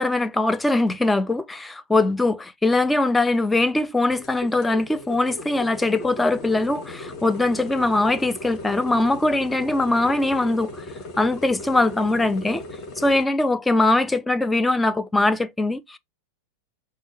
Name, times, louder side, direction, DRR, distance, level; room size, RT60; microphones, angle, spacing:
voice 1, 0.0-10.8 11.2-12.6 13.0-16.0, left 2 dB, 10° left, 0.4 m, -21 dB
sound 1, 4.1-13.2, left 2 dB, 35° left, 1.4 m, -38 dB
4.4 x 2.4 x 4.6 m
figure-of-eight pair, 90°, 0 cm